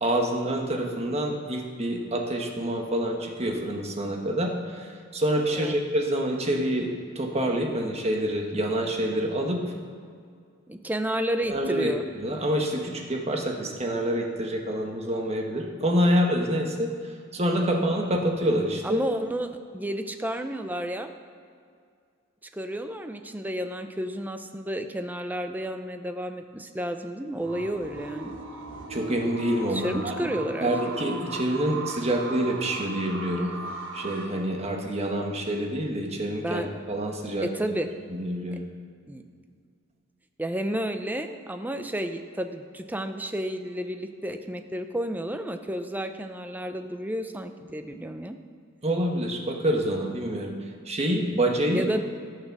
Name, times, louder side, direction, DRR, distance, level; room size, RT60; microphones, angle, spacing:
voice 1, 0.0-6.9 7.1-9.6 11.5-11.9 12.2-16.9 17.3-19.0 28.9-30.3 30.6-33.5 33.9-37.5 38.1-38.6 48.8-50.5 50.8-51.9, right 1 dB, 30° right, 1 dB, 1.3 m, -27 dB
voice 2, 10.7-12.0 18.8-21.1 22.5-28.3 29.7-30.7 36.4-36.7 37.4-37.9 39.1-39.2 40.4-48.4 51.7-52.0, right 1 dB, 10° right, 7 dB, 0.6 m, -31 dB
sound 1, 27.4-34.2, right 3 dB, 70° right, 1.4 m, -37 dB
14.0 x 6.7 x 6.0 m, 2.2 s
head